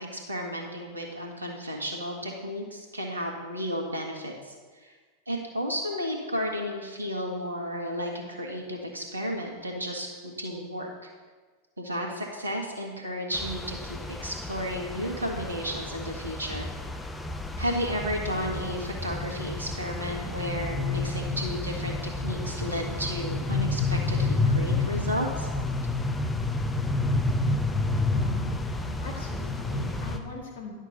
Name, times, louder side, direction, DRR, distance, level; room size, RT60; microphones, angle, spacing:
voice 1, 0.0-4.5 4.8-4.9 5.3-10.9 11.8-16.7 17.6-21.9 22.2-25.5, equal, 80° right, 0 dB, 1.6 m, -33 dB
sound 1, 13.3-30.2, left 2 dB, 10° left, 0.7 m, -30 dB
voice 2, 28.1-30.7, left 1 dB, 60° left, -1 dB, 2.1 m, -41 dB
11.0 x 6.4 x 4.0 m, 1.4 s
figure-of-eight pair, 90°, 0 cm